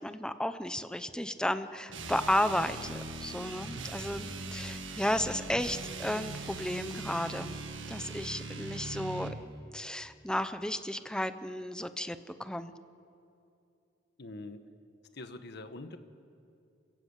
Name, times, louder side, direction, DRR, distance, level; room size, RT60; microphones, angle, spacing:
voice 1, 0.0-7.6 7.9-9.3 9.7-12.7, left 1 dB, 5° left, 11 dB, 0.8 m, -33 dB
sound 1, 1.9-9.4, right 3 dB, 75° right, 1.8 m, -40 dB
voice 2, 14.2-14.6 15.1-16.0, left 2 dB, 60° left, 9 dB, 1.4 m, -43 dB
28.5 x 16.0 x 8.3 m, 2.6 s
head